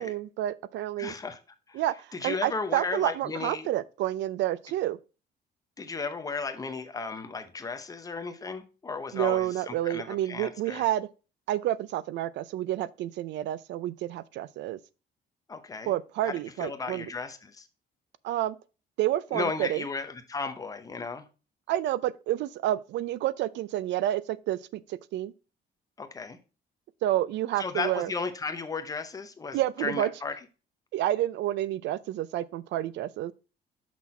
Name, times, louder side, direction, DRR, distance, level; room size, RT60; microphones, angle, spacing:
voice 1, 0.0-1.1 1.7-5.0 9.1-11.1 11.5-14.8 15.9-17.1 18.2-18.6 19.0-19.8 21.7-24.6 24.9-25.3 27.0-28.1 29.5-30.1 30.9-33.3, right 13 dB, 80° right, 0.5 m, -29 dB
voice 2, 1.0-1.4 1.7-1.8 2.1-3.7 5.8-10.8 15.5-15.9 16.2-17.7 19.3-21.3 26.0-26.4 27.6-30.3, left 4 dB, 20° left, 0.7 m, -35 dB
6.0 x 6.0 x 4.2 m
cardioid pair, 160°, 18 cm